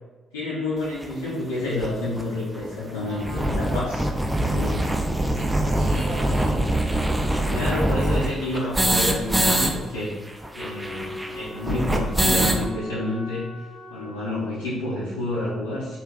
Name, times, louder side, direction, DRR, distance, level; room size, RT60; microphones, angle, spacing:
voice 1, 0.3-4.1 4.4-4.8 7.5-10.1 10.5-13.5 13.9-16.0, left 2 dB, 75° left, -8 dB, 0.4 m, -29 dB
sound 1, 1.0-1.1 1.8-1.9 2.2-2.3 2.6-2.7 3.0-9.7 10.0-10.1 10.3-12.7, right 1 dB, 10° right, 0.3 m, -23 dB
voice 2, 3.0-6.8, right 1 dB, 55° right, -4 dB, 0.7 m, -40 dB
Wind instrument woodwind instrument, 10.5-14.9, left 2 dB, 35° left, 0.6 m, -40 dB
2.5 x 2.3 x 2.3 m, 1.2 s
figure-of-eight pair, 40°, 0 cm